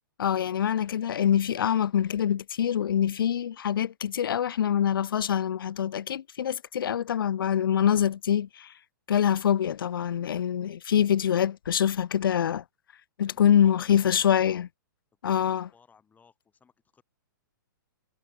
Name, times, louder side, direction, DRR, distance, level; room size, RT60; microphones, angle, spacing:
voice 1, 0.2-8.7 9.1-12.6 13.2-14.7 15.2-15.7, left 9 dB, 85° left, 0.4 m, -25 dB
voice 2, 13.2-14.3 15.3-17.0, left 6 dB, 15° left, 4.3 m, -61 dB
hypercardioid pair, 130°, 11 cm